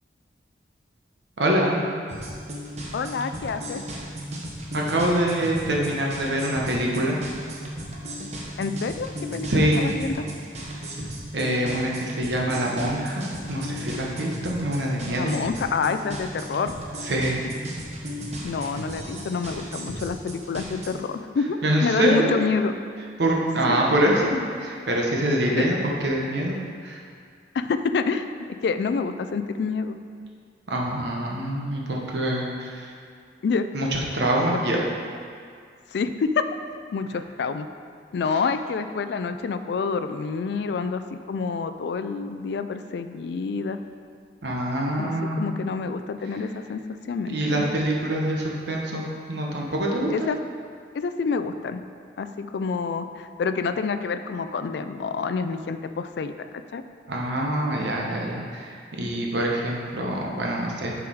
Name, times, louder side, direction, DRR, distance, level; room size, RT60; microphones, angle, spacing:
voice 1, 1.4-1.8 4.7-7.2 9.5-9.9 11.3-15.3 17.0-17.4 21.6-22.4 23.2-26.6 26.8-27.0 30.7-32.9 33.7-34.8 44.4-45.4 47.3-50.3 57.1-60.9, right 1 dB, 65° right, -2 dB, 1.0 m, -25 dB
sound 1, 2.1-20.9, right 1 dB, 35° right, 0.9 m, -35 dB
voice 2, 2.9-3.8 8.6-10.3 15.1-16.7 17.4-17.5 18.4-22.7 23.7-23.8 25.5-25.7 27.5-28.3 28.6-30.0 33.4-33.7 34.5-34.6 35.9-36.4 36.9-37.7 38.1-43.8 45.0-47.7 50.1-50.4 50.9-51.8 52.2-56.8, left 5 dB, 60° left, 9 dB, 0.3 m, -28 dB
7.0 x 4.8 x 4.7 m, 2.2 s
head